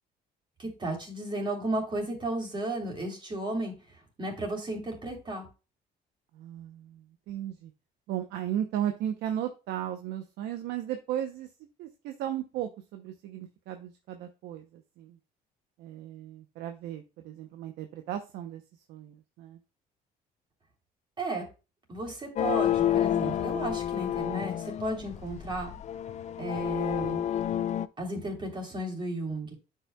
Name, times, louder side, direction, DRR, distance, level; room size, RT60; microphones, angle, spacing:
voice 1, 0.6-3.7 4.2-5.5 21.2-21.4 21.9-25.8 26.4-27.2 28.0-29.5, right 2 dB, 30° right, 1 dB, 3.1 m, -34 dB
voice 2, 6.3-7.7 8.1-11.5 11.8-15.2 15.8-18.6 18.9-19.6, right 11 dB, 85° right, 6 dB, 0.7 m, -35 dB
sound 1, 22.4-27.9, left 11 dB, 45° left, 0.4 m, -29 dB
9.6 x 5.6 x 2.2 m, 0.30 s
cardioid pair, 110°, 17 cm